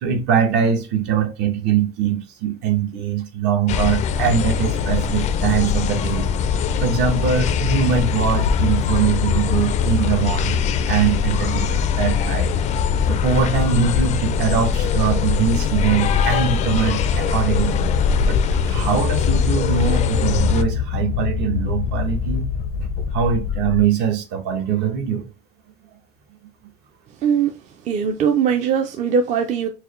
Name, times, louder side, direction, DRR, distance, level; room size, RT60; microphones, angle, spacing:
voice 1, 0.0-6.3 6.8-12.5 13.1-17.8 18.2-22.5 23.1-25.3, right 7 dB, 65° right, 1.0 m, -22 dB
sound 1, 3.7-20.6, left 7 dB, 40° left, 0.4 m, -21 dB
sound 2, 8.5-23.9, left 6 dB, 85° left, 0.6 m, -28 dB
voice 2, 27.1-29.7, right 7 dB, 40° right, 0.5 m, -21 dB
4.6 x 2.2 x 3.1 m
cardioid pair, 160°, 19 cm